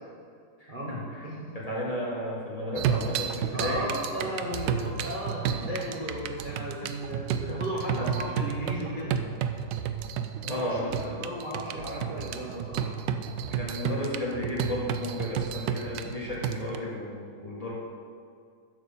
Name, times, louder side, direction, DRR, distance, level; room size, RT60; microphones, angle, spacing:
voice 1, 0.6-1.2 1.5-3.9 5.5-5.7 7.4-7.5 7.9-8.1 10.4-11.2 13.6-17.7, left 1 dB, 20° left, -6 dB, 1.8 m, -34 dB
voice 2, 1.2-1.5 3.5-9.2 10.4-10.9 11.2-12.9, equal, 35° right, -5 dB, 1.1 m, -35 dB
sound 1, 2.8-16.8, right 8 dB, 85° right, 1.3 m, -32 dB
8.1 x 6.4 x 6.8 m, 2.2 s
omnidirectional pair, 1.9 m